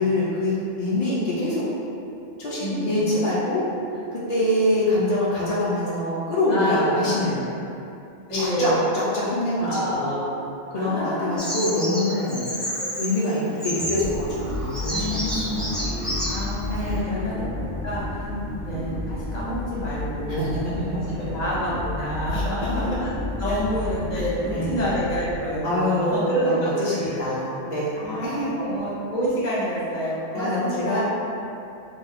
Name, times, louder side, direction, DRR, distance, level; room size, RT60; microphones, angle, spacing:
voice 1, 0.0-1.7 2.4-3.7 3.9-7.4 8.3-10.3 10.7-12.4 13.0-15.9 16.7-17.3 18.2-18.5 20.4-21.3 22.3-22.9 24.5-24.8 25.6-28.5 30.3-31.0, left 1 dB, 60° left, -8 dB, 0.4 m, -25 dB
voice 2, 2.6-3.1 6.5-7.2 8.3-8.8 9.6-10.3 10.7-11.4 12.8-12.9 14.9-15.7 16.3-18.3 18.6-20.5 20.9-23.1 23.4-27.3 28.0-31.0, equal, 40° left, -9 dB, 0.8 m, -28 dB
Bird vocalization bird call bird song, 11.4-17.0, equal, ahead, 0.4 m, -31 dB
sound 1, 13.8-25.7, left 1 dB, 85° right, 1.0 m, -36 dB
sound 2, 14.0-25.4, left 2 dB, 60° right, 0.5 m, -33 dB
2.5 x 2.3 x 3.3 m, 2.7 s
omnidirectional pair, 1.2 m